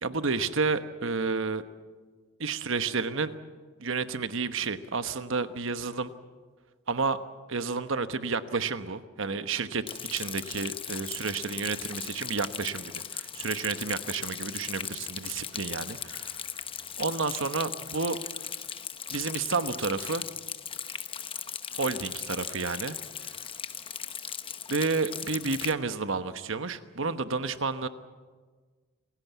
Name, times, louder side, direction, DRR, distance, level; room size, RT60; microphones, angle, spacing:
voice 1, 0.0-1.6 2.4-3.3 3.8-6.1 6.9-7.2 7.5-16.4 17.0-18.2 19.1-20.2 21.7-23.0 24.7-27.9, right 4 dB, 65° right, 11 dB, 1.1 m, -31 dB
Rain, 9.9-25.7, left 8 dB, 25° left, 0.9 m, -38 dB
27.5 x 17.0 x 8.3 m, 1.4 s
head